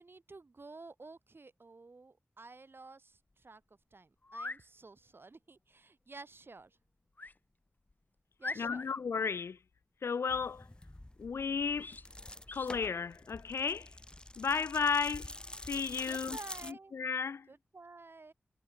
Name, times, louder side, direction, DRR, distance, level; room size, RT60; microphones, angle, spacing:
voice 1, 0.0-3.6 3.9-6.8 8.4-8.9 16.0-16.9 17.5-18.3, right 3 dB, 60° right, 3.5 m, -52 dB
sound 1, 3.3-3.4 4.2-4.6 7.2-7.4 7.9-8.0 8.4-9.0 11.8-12.1 12.5-12.7, left 2 dB, 45° left, 1.3 m, -42 dB
voice 2, 8.6-9.6 10.0-10.7 11.2-12.0 12.5-13.9 14.4-15.3 15.7-16.4 16.6-17.5, left 5 dB, 90° left, 0.4 m, -33 dB
sound 2, 10.3-16.7, left 1 dB, 20° left, 1.3 m, -47 dB
cardioid pair, 45°, 4 cm